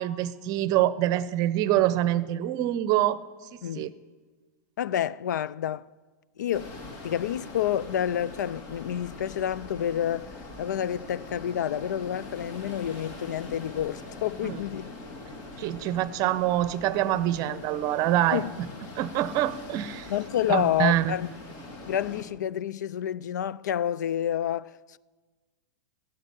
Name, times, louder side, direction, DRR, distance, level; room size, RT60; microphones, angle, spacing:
voice 1, 0.0-3.2 3.8-3.9 14.4-14.6 15.6-18.4 19.0-20.1 20.5-21.1, right 13 dB, 40° right, 0.7 m, -25 dB
voice 2, 3.6-3.9 4.8-5.9 6.4-6.7 7.0-14.9 18.3-18.5 20.1-21.3 21.9-25.0, left 10 dB, 75° left, 0.4 m, -29 dB
sound 1, 6.5-22.2, left 2 dB, 40° left, 2.6 m, -43 dB
15.0 x 8.0 x 9.2 m
hypercardioid pair, 110°, 10 cm